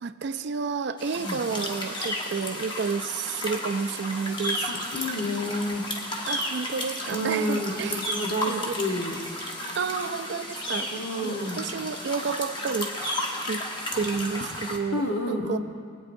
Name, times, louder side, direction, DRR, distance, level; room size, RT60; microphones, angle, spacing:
voice 1, 0.0-5.0 6.3-8.1 8.5-8.8 9.8-10.9 11.2-13.2 13.5-13.6 13.9-15.0 15.3-15.6, right 5 dB, 55° right, 10 dB, 0.4 m, -30 dB
sound 1, 1.0-14.8, left 1 dB, 20° left, 0.9 m, -33 dB
voice 2, 4.7-5.8 7.1-9.2 10.9-11.6 14.9-15.6, equal, 65° left, 2 dB, 1.1 m, -29 dB
21.5 x 8.6 x 2.6 m, 2.2 s
head